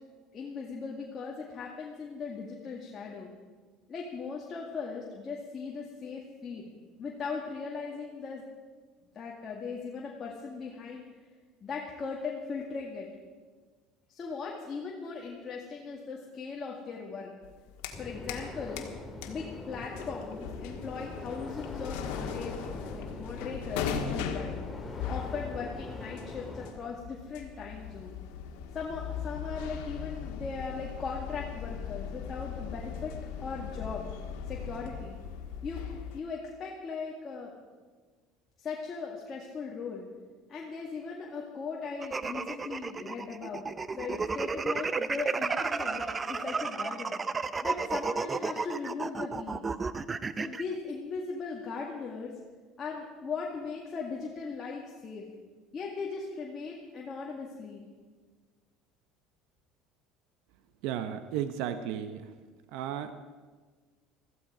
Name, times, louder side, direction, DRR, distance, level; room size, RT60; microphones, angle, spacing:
voice 1, 0.3-3.3 3.9-6.7 7.0-8.4 9.1-11.0 11.6-13.1 14.1-17.3 18.0-18.9 19.3-24.6 25.1-28.2 28.7-33.1 33.4-34.1 34.5-35.2 35.6-35.8 36.1-37.5 38.6-40.0 40.5-43.6 44.0-47.2 47.6-49.6 50.4-52.3 52.8-55.2 55.7-57.8, left 5 dB, 30° left, -2 dB, 2.0 m, -38 dB
sound 1, 17.4-18.5 18.8-36.2, left 7 dB, 85° left, 1.6 m, -39 dB
sound 2, 17.9-26.7, left 2 dB, 15° left, 2.1 m, -42 dB
sound 3, 42.0-50.6, right 4 dB, 20° right, 0.6 m, -32 dB
voice 2, 60.8-62.3 62.7-63.1, right 10 dB, 75° right, 10 dB, 0.8 m, -34 dB
15.5 x 14.5 x 4.9 m, 1.4 s
supercardioid pair, 120°, 0 cm